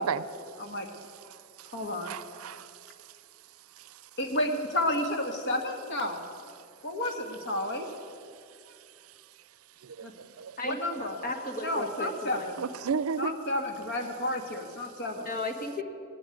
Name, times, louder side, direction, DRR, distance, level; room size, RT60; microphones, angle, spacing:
voice 1, 0.0-1.7 2.0-3.1 3.8-4.0 8.7-8.8 9.1-9.2 9.8-10.6 12.6-13.4, right 6 dB, 90° right, 0.5 m, -35 dB
voice 2, 1.7-2.1 4.2-6.2 6.8-7.9 10.0-10.1 10.6-11.1 11.6-12.6 13.2-15.3, left 1 dB, 60° left, 1.7 m, -31 dB
voice 3, 11.2-12.5 15.2-15.8, left 2 dB, 40° left, 1.6 m, -34 dB
18.5 x 7.8 x 9.8 m
head